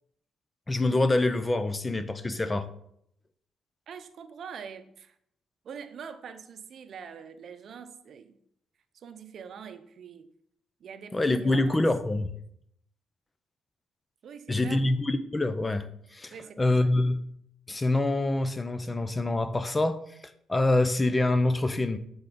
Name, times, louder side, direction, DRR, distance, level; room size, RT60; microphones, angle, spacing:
voice 1, 0.7-2.7 11.1-12.3 14.5-17.2 17.7-20.0 20.5-22.0, left 2 dB, 20° left, 12 dB, 0.6 m, -26 dB
voice 2, 3.9-5.2 5.6-8.4 8.9-10.3 10.8-11.9 14.2-14.9 16.3-16.9, right 6 dB, 60° right, 9 dB, 0.7 m, -44 dB
8.1 x 3.9 x 5.2 m, 0.71 s
cardioid pair, 90°, 0 cm